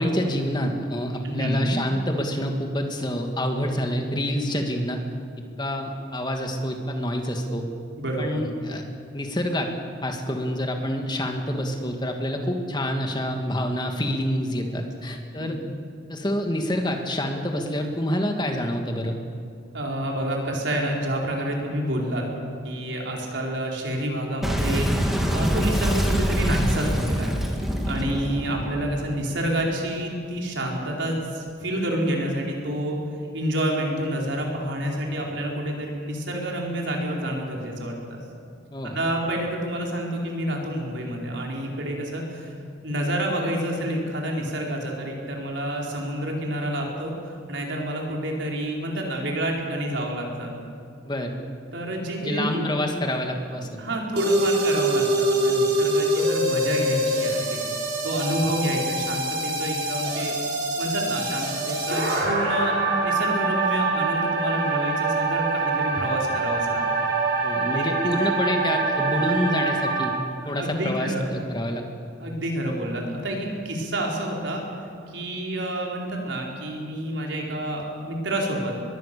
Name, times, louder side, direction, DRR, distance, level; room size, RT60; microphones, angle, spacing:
voice 1, 0.0-5.0 5.6-7.6 8.2-8.8 9.1-9.7 10.0-15.6 16.1-19.1 38.7-39.0 51.1-51.4 52.2-53.7 67.4-70.1 70.5-71.8, equal, 25° left, 3 dB, 2.3 m, -27 dB
voice 2, 1.2-1.8 8.0-8.4 15.4-15.7 19.7-22.3 22.6-24.9 25.3-27.4 27.9-33.0 33.3-38.2 38.8-42.5 42.8-47.1 47.5-50.5 51.7-52.7 53.8-57.6 58.0-60.4 60.8-66.8 67.7-67.8 70.4-71.3 72.2-74.6 75.1-78.7, right 1 dB, 75° right, -1 dB, 4.4 m, -28 dB
Boom, 24.4-29.6, equal, ahead, 2.4 m, -25 dB
sound 1, 54.2-70.2, right 2 dB, 55° right, 4.8 m, -24 dB
24.0 x 21.5 x 7.0 m, 2.4 s
head